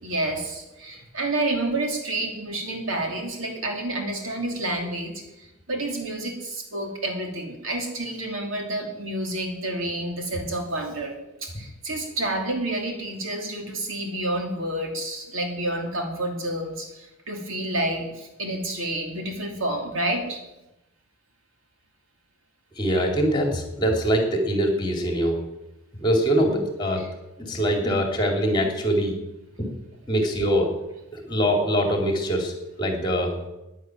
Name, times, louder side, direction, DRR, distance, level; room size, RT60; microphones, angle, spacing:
voice 1, 0.0-20.4 26.5-26.6 27.0-27.1, right 1 dB, 65° right, 2 dB, 2.8 m, -29 dB
voice 2, 22.7-25.4 26.0-27.0 27.4-29.1 29.6-29.7 30.1-30.7 31.1-32.5 32.8-33.3, equal, 20° left, 2 dB, 2.6 m, -23 dB
11.0 x 10.5 x 9.0 m, 0.96 s
head